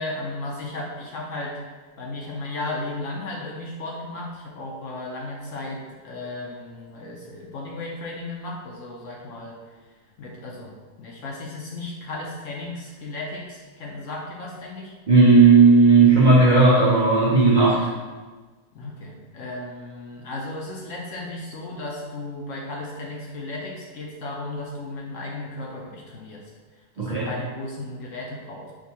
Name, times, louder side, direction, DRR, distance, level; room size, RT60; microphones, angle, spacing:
voice 1, 0.0-1.6 2.0-9.6 10.2-14.9 17.7-18.0 18.7-26.5 27.0-28.7, left 2 dB, 65° left, -2 dB, 0.8 m, -35 dB
voice 2, 15.1-17.8 27.0-27.3, right 4 dB, 85° right, -6 dB, 0.4 m, -14 dB
4.7 x 2.3 x 2.8 m, 1.3 s
omnidirectional pair, 1.7 m